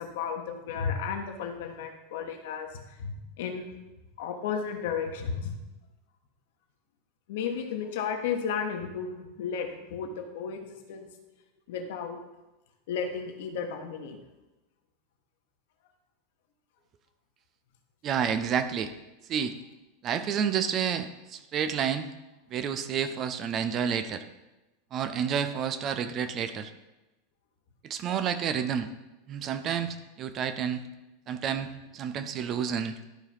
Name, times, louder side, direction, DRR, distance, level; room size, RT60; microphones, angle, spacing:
voice 1, 0.0-2.7 3.0-3.6 4.2-5.5 7.3-11.1 11.7-12.2 12.9-14.2, left 6 dB, 55° left, 4 dB, 1.5 m, -33 dB
voice 2, 18.0-18.9 19.3-19.5 20.0-22.1 22.5-24.2 24.9-26.7 27.8-28.9 29.3-30.8 31.3-31.7 31.9-32.9, right 8 dB, 35° right, 10 dB, 0.7 m, -29 dB
12.0 x 4.8 x 5.6 m, 1.0 s
figure-of-eight pair, 85°, 0 cm